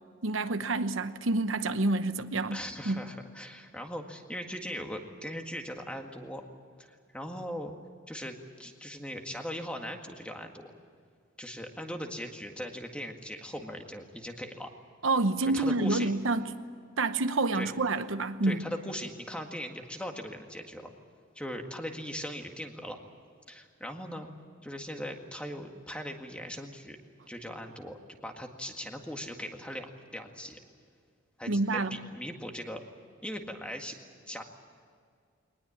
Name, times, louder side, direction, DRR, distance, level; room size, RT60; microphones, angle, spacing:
voice 1, 0.2-3.0 15.0-16.5 17.0-18.6 31.5-32.0, right 2 dB, 75° right, 0.9 m, -28 dB
voice 2, 2.5-6.4 6.8-7.7 8.1-10.7 11.4-14.7 15.5-16.1 17.5-17.7 18.4-20.9 21.4-23.0 23.5-24.3 24.6-27.0 27.3-30.6 31.4-32.8 33.2-34.0 34.3-34.4, equal, 5° left, 1.8 m, -39 dB
22.0 x 20.0 x 8.7 m
head